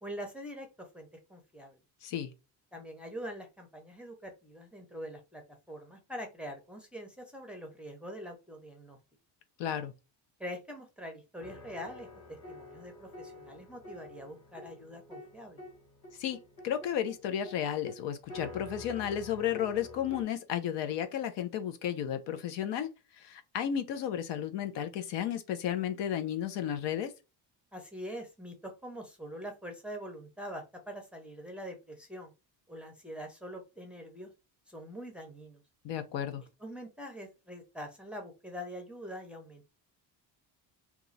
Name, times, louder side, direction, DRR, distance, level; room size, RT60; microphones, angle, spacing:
voice 1, 0.0-0.7 0.9-1.8 2.7-5.4 5.7-9.0 10.4-12.1 12.5-15.6 27.7-32.3 32.7-34.3 34.7-35.6 36.6-39.7, equal, 5° right, 0.5 m, -44 dB
voice 2, 2.0-2.3 9.6-9.9 16.2-16.4 16.6-22.9 23.2-27.1 35.8-36.4, left 9 dB, 80° left, 0.7 m, -33 dB
sound 1, 11.4-20.2, left 2 dB, 45° left, 1.6 m, -49 dB
3.0 x 2.3 x 3.9 m
cardioid pair, 165°, 42 cm